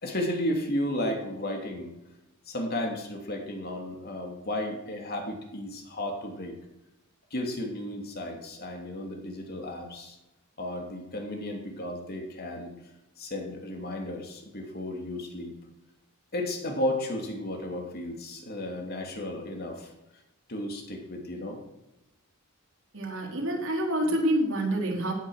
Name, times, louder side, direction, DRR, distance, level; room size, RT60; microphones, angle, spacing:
voice 1, 0.0-1.9 2.5-6.6 7.3-10.2 10.6-12.7 13.2-15.5 16.3-19.9 20.5-21.6, left 1 dB, 50° left, 2 dB, 3.0 m, -33 dB
voice 2, 22.9-25.1, right 1 dB, 65° right, -1 dB, 4.1 m, -27 dB
17.0 x 9.7 x 6.5 m, 0.96 s
head